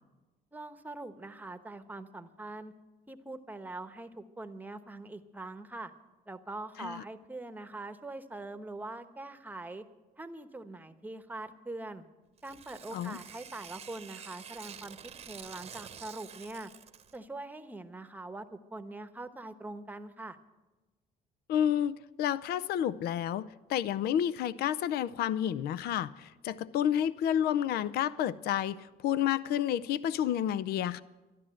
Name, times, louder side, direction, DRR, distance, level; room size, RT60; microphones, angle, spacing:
voice 1, 0.5-2.7 3.1-5.9 6.3-9.8 10.2-12.0 12.4-16.7 17.1-20.4, right 2 dB, 10° right, 1.0 m, -43 dB
Tearing, 12.4-17.2, right 7 dB, 35° right, 0.9 m, -48 dB
voice 2, 21.5-31.0, left 10 dB, 70° left, 0.5 m, -30 dB
13.5 x 11.5 x 7.6 m
cardioid pair, 110°, 17 cm